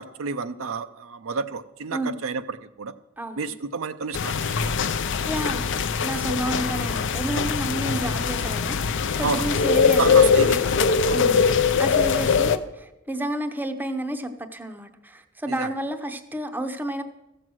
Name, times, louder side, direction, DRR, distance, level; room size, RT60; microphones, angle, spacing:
voice 1, 0.0-2.9 3.4-4.7 9.2-9.5 10.0-11.2 15.5-15.7, right 5 dB, 70° right, 0.6 m, -31 dB
voice 2, 3.2-3.5 5.3-5.7 6.0-10.6 11.1-11.5 11.8-17.0, right 1 dB, 10° right, 0.7 m, -31 dB
sound 1, 4.1-12.6, left 5 dB, 60° left, 0.6 m, -22 dB
14.0 x 7.7 x 6.2 m
head